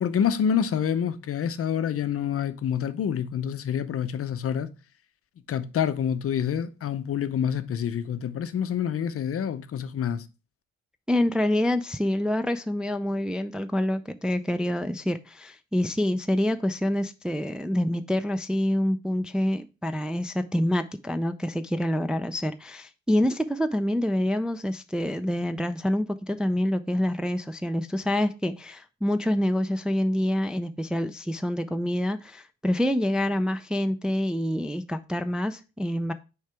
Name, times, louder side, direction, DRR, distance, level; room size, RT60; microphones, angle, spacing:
voice 1, 0.0-4.7 5.5-10.3, left 8 dB, 50° left, 0.6 m, -27 dB
voice 2, 11.1-36.1, left 1 dB, 5° right, 0.4 m, -26 dB
6.5 x 4.7 x 3.3 m
cardioid pair, 90°, 30 cm